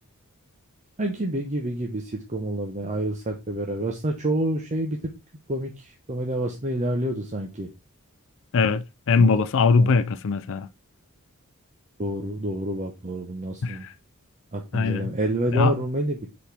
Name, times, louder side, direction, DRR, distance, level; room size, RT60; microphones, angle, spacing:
voice 1, 1.0-5.0 5.5-7.7 9.2-9.4 9.8-9.9 12.0-13.8 14.5-16.3, right 1 dB, 35° right, 0.9 m, -28 dB
voice 2, 8.5-10.7 13.6-13.9 14.7-15.1 15.5-15.7, left 4 dB, 60° left, 0.5 m, -21 dB
7.2 x 4.3 x 3.4 m
head